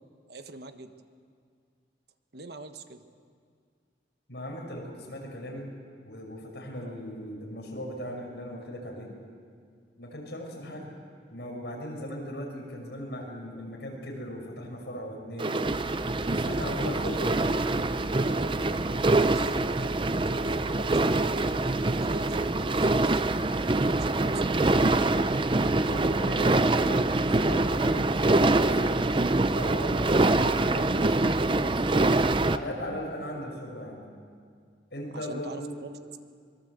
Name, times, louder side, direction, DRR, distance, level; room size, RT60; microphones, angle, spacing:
voice 1, 0.3-0.9 2.3-3.0 6.8-6.9 16.6-17.4 17.7-21.7 22.0-23.2 23.8-24.8 35.1-36.0, right 2 dB, 60° right, 8 dB, 1.3 m, -44 dB
voice 2, 4.3-5.7 6.0-9.1 10.0-10.9 11.3-15.6 16.3-17.8 25.8-29.0 29.5-32.2 32.5-34.0 34.9-35.7, equal, 65° left, 0 dB, 5.8 m, -38 dB
sound 1, 15.4-32.6, right 2 dB, 25° right, 0.6 m, -25 dB
24.5 x 22.0 x 8.1 m, 2.1 s
head